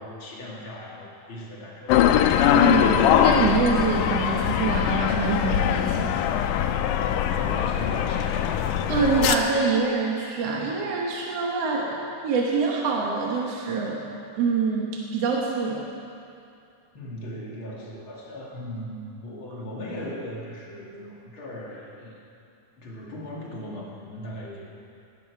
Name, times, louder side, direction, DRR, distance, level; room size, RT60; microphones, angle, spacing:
voice 1, 0.0-2.0 7.3-8.7 16.9-22.1 22.8-24.7, left 1 dB, 45° left, -3 dB, 2.4 m, -38 dB
sound 1, 1.9-9.4, left 10 dB, 85° left, 2.2 m, -22 dB
voice 2, 2.5-6.2 8.9-14.0 14.4-15.9, right 4 dB, 60° right, -2 dB, 2.0 m, -25 dB
18.0 x 12.5 x 4.7 m, 2.6 s
omnidirectional pair, 3.7 m